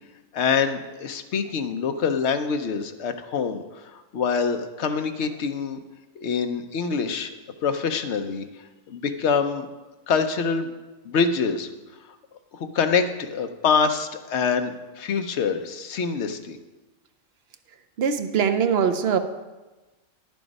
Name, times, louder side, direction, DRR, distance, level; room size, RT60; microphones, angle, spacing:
voice 1, 0.3-5.8 6.2-7.3 7.6-8.4 8.9-9.7 10.1-10.7 11.0-11.7 12.5-16.6, left 5 dB, 60° left, 7 dB, 1.0 m, -25 dB
voice 2, 18.0-19.2, right 7 dB, 55° right, 8 dB, 0.8 m, -22 dB
10.5 x 7.0 x 5.3 m, 1.2 s
omnidirectional pair, 1.4 m